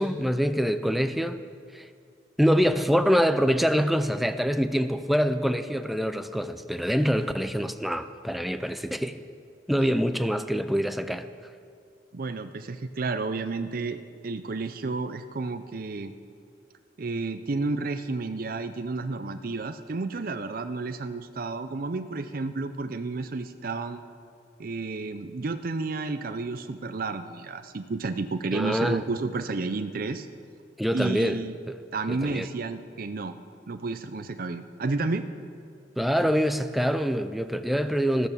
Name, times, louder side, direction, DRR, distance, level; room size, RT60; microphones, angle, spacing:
voice 1, 0.0-1.4 1.7-1.9 2.4-9.2 9.7-11.3 28.5-29.0 30.8-31.4 31.7-31.8 32.1-32.5 36.0-38.3, equal, ahead, 10 dB, 0.5 m, -25 dB
voice 2, 12.1-16.1 17.0-24.0 24.6-30.3 30.9-31.6 31.9-33.3 33.7-35.3, right 3 dB, 50° right, 9 dB, 0.6 m, -31 dB
14.0 x 13.0 x 6.9 m, 2.3 s
head